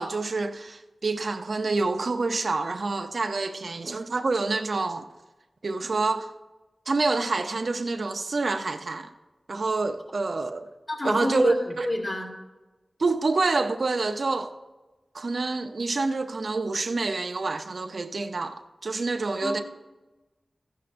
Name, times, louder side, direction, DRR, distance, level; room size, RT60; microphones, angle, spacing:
voice 1, 0.0-5.1 5.6-6.3 6.9-9.1 9.5-10.7 11.0-11.9 13.0-14.5 15.1-19.6, right 3 dB, 65° right, 0.6 m, -27 dB
voice 2, 10.9-12.3 19.4-19.6, left 1 dB, 40° left, 2.2 m, -28 dB
14.5 x 10.5 x 2.5 m
wide cardioid pair, 95°, 0 cm